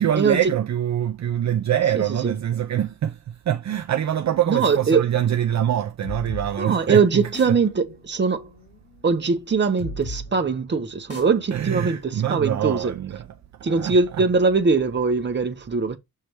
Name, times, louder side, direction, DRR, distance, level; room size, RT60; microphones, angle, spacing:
voice 1, 0.0-7.6 11.5-13.3 13.6-14.2, right 10 dB, 50° right, 0.5 m, -24 dB
voice 2, 1.9-2.3 4.5-5.0 6.6-8.5 9.0-12.9 13.6-16.0, right 4 dB, 30° right, 0.8 m, -21 dB
sound 1, 6.0-13.4, left 1 dB, 40° left, 2.5 m, -40 dB
6.7 x 3.3 x 4.5 m
wide cardioid pair, 180°, 36 cm